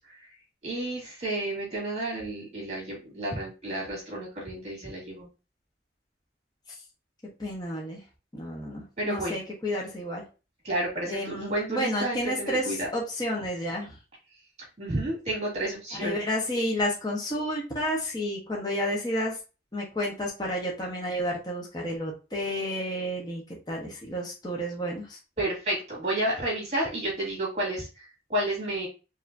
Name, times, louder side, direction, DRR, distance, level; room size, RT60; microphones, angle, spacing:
voice 1, 0.6-5.3 9.0-9.4 10.6-12.9 14.8-16.2 25.4-28.9, right 1 dB, 35° right, -4 dB, 2.3 m, -31 dB
voice 2, 7.4-8.0 8.3-10.2 11.0-14.0 15.9-19.4 19.7-25.2, equal, 20° left, -3 dB, 1.1 m, -31 dB
4.8 x 3.0 x 2.7 m, 0.31 s
head